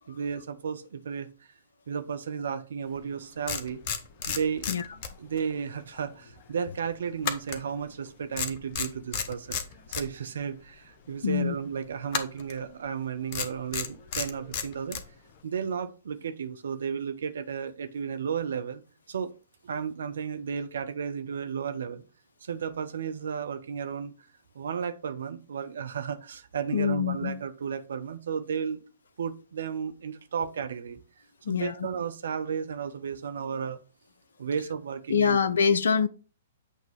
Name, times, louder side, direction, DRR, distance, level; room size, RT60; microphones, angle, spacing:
voice 1, 0.1-1.3 1.9-3.8 4.3-4.7 5.2-9.6 10.0-15.0 15.4-18.8 19.1-19.3 19.6-22.0 22.4-24.1 24.5-28.8 29.2-31.0 31.5-33.8 34.4-35.4, right 7 dB, 65° right, 0.8 m, -33 dB
sound 1, 3.0-3.1 3.5-5.5 5.8-6.0 7.2-8.1 8.3-10.1 12.1-12.6 13.3-15.1, left 7 dB, 40° left, 1.0 m, -32 dB
voice 2, 11.2-11.5 26.7-27.4 31.5-31.9 35.1-36.1, left 6 dB, 65° left, 0.4 m, -25 dB
8.4 x 3.0 x 5.4 m
figure-of-eight pair, 115°, 0 cm